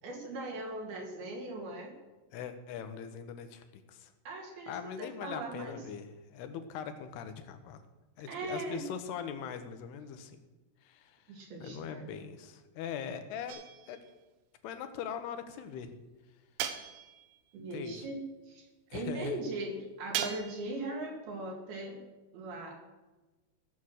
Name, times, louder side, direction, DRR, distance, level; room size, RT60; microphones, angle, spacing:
voice 1, 0.0-1.9 4.3-4.7 5.0-5.8 8.3-8.8 11.3-12.2 17.5-18.7 18.9-22.0 22.3-22.7, right 2 dB, 70° right, 0 dB, 4.2 m, -39 dB
voice 2, 2.3-4.1 4.7-7.8 8.2-10.4 10.8-14.0 14.6-16.0 17.7-18.1 18.9-19.4, left 7 dB, 80° left, 9 dB, 3.0 m, -41 dB
sound 1, 13.5-14.1 16.6-17.4 20.1-20.8, right 10 dB, 90° right, 3.0 m, -38 dB
16.0 x 7.3 x 6.5 m, 1.1 s
omnidirectional pair, 4.7 m